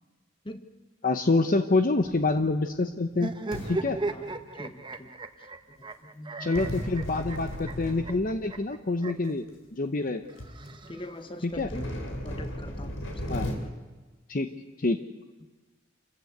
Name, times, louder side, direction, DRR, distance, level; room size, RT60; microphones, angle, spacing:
voice 1, 1.0-3.3 3.6-4.0 6.4-9.4 9.7-10.2 11.4-11.7 13.3-13.5 14.3-14.5 14.8-15.0, left 3 dB, 45° left, 7 dB, 0.9 m, -26 dB
sound 1, 2.0-2.6 3.5-4.8 6.5-8.7 9.5-9.6 10.1-10.2 10.4-10.7 11.5-13.5, equal, 85° left, 3.9 m, -36 dB
sound 2, 3.1-9.3 10.3-11.4, right 2 dB, 25° right, 1.1 m, -37 dB
voice 2, 4.5-6.6 8.9-9.3 10.7-12.0 12.2-13.4 15.4-15.5, left 1 dB, 25° left, 9 dB, 1.4 m, -43 dB
28.0 x 15.0 x 8.1 m, 1.3 s
head